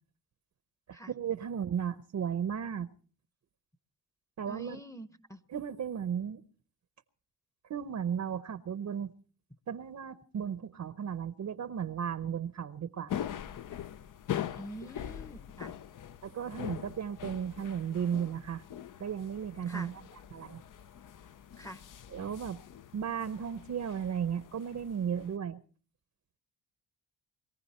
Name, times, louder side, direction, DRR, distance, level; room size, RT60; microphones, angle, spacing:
voice 1, 0.9-2.9 4.4-4.8 5.5-6.4 7.7-9.1 9.7-13.1 16.2-18.6 19.0-20.0 20.3-20.6 22.1-22.6 22.9-25.6, right 8 dB, 45° right, 0.8 m, -35 dB
voice 2, 4.5-5.4 14.6-15.7 19.7-19.9 21.6-21.8, right 1 dB, 10° left, 0.9 m, -45 dB
sound 1, 13.1-25.3, left 10 dB, 55° left, 0.7 m, -42 dB
22.0 x 15.0 x 4.3 m
cardioid pair, 85°, 38 cm